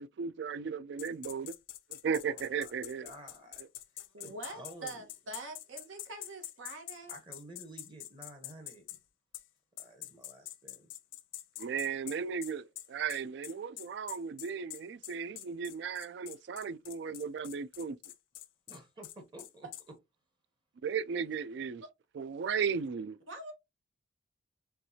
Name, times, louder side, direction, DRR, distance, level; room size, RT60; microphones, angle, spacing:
voice 1, 0.0-1.5 1.9-3.1 11.6-18.0 20.8-21.8 22.1-23.2, right 6 dB, 60° right, 0.3 m, -36 dB
sound 1, 1.0-9.0 9.3-9.5 9.8-19.8, left 14 dB, 80° left, 0.5 m, -45 dB
voice 2, 2.3-3.6 3.9-5.1 7.1-9.0 9.8-10.9 18.7-19.7, right 1 dB, 25° right, 0.8 m, -52 dB
voice 3, 4.1-7.1 23.3-23.5, right 2 dB, 85° right, 1.3 m, -45 dB
4.5 x 3.1 x 2.7 m
head